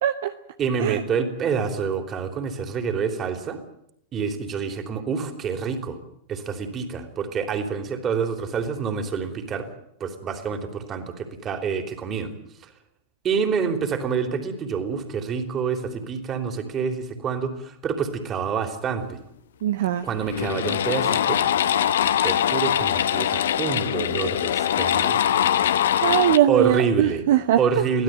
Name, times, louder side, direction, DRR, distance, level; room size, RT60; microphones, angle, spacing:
voice 1, 0.0-0.3 0.8-1.0 19.6-20.1 26.0-27.6, right 12 dB, 55° right, 10 dB, 0.9 m, -21 dB
voice 2, 0.6-3.6 4.1-6.0 6.3-9.7 10.0-12.3 12.6-12.7 13.2-19.2 20.0-21.4 22.2-25.2 26.5-27.2 27.6-28.0, right 6 dB, 25° right, 7 dB, 3.5 m, -27 dB
sound 1, 19.7-19.8 20.2-26.4, left 10 dB, 60° left, 0.9 m, -22 dB
23.5 x 16.0 x 9.4 m, 0.76 s
figure-of-eight pair, 90°, 0 cm